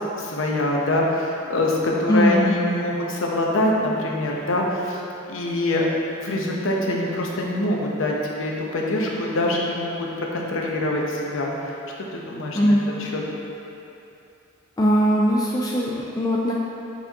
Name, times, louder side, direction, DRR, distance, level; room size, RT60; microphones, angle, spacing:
voice 1, 0.2-5.0 5.3-5.8 6.2-11.7 12.1-13.2, left 1 dB, 75° left, -2 dB, 0.8 m, -24 dB
voice 2, 2.1-2.6 12.5-12.8 14.8-16.5, equal, 20° left, -4 dB, 0.3 m, -20 dB
8.2 x 4.3 x 2.9 m, 2.8 s
head